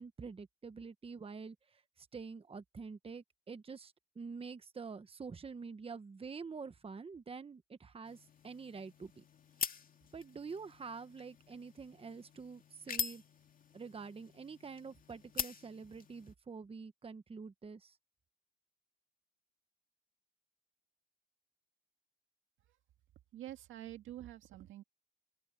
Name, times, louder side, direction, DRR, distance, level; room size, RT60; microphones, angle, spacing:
voice 1, 0.0-9.2 10.1-13.2 13.7-18.0, right 5 dB, 30° right, 1.2 m, -47 dB
sound 1, 8.0-16.4, left 7 dB, 45° left, 2.2 m, -45 dB
voice 2, 23.3-24.8, right 13 dB, 85° right, 1.9 m, -47 dB
open air
cardioid pair, 90°, 20 cm